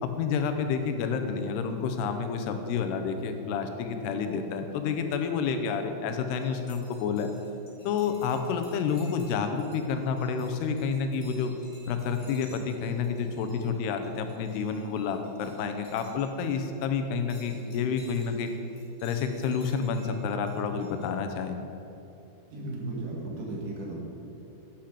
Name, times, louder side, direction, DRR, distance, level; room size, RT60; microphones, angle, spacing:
voice 1, 0.0-7.3 7.9-11.5 11.9-18.5 19.0-21.6, left 6 dB, 85° left, 7 dB, 2.9 m, -29 dB
sound 1, 6.2-16.3 16.5-16.8 17.2-21.2, left 1 dB, 45° left, 4.5 m, -56 dB
voice 2, 22.5-23.9, right 2 dB, 55° right, -2 dB, 3.3 m, -35 dB
12.0 x 10.5 x 5.0 m, 3.0 s
omnidirectional pair, 4.6 m